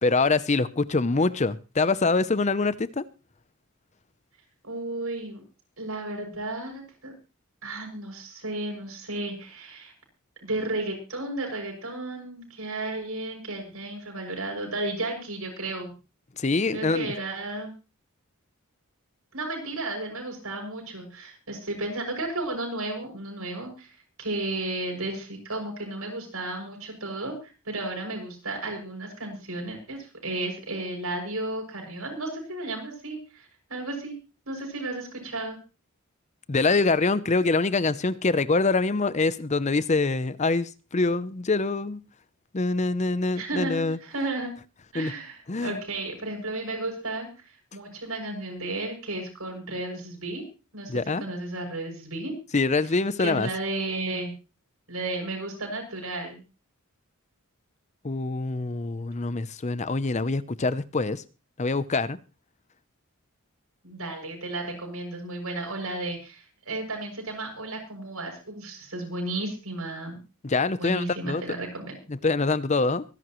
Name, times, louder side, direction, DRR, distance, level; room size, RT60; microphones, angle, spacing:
voice 1, 0.0-3.0 16.4-17.1 36.5-42.0 42.5-44.0 44.9-45.1 45.5-45.8 50.9-51.2 52.5-53.5 58.0-61.2 61.6-62.2 70.4-71.4 72.1-73.0, left 3 dB, 30° left, 0.6 m, -25 dB
voice 2, 4.6-5.4 5.8-7.1 7.6-9.9 10.4-15.9 16.7-17.7 19.3-23.9 24.2-34.1 34.4-35.6 43.3-44.5 44.9-50.4 50.7-50.9 51.2-52.3 53.2-54.3 54.9-56.4 63.8-70.2 70.8-72.0, right 2 dB, 80° right, 6.7 m, -33 dB
24.5 x 11.0 x 3.1 m
head